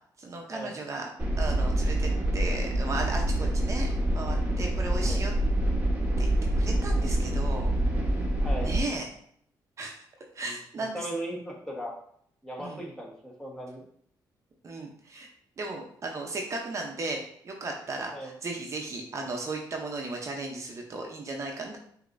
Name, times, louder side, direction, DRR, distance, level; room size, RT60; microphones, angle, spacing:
voice 1, 0.2-1.1 1.4-5.3 6.2-6.3 6.6-7.7 8.6-9.1 9.8-9.9 10.3-11.1 12.6-12.8 14.6-15.3 15.6-21.8, right 2 dB, 40° right, 1 dB, 0.7 m, -35 dB
sound 1, 1.2-8.8, right 1 dB, 20° right, 1.1 m, -26 dB
voice 2, 8.4-8.7 10.4-10.5 10.9-12.0 12.4-13.8 18.1-18.3, equal, 10° left, -2 dB, 1.2 m, -37 dB
6.3 x 2.8 x 2.6 m, 0.64 s
cardioid pair, 105°, 8 cm